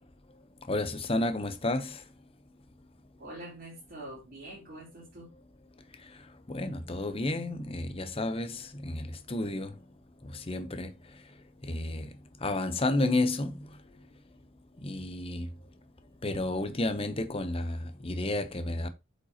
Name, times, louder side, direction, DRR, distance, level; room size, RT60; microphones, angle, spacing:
voice 1, 0.7-2.0 6.5-9.7 10.5-10.9 11.7-12.1 12.4-13.5 14.8-15.5 16.2-18.9, left 2 dB, 30° left, 0.8 m, -31 dB
voice 2, 3.2-5.3, right 1 dB, 45° right, 3.3 m, -45 dB
8.1 x 5.2 x 2.9 m
head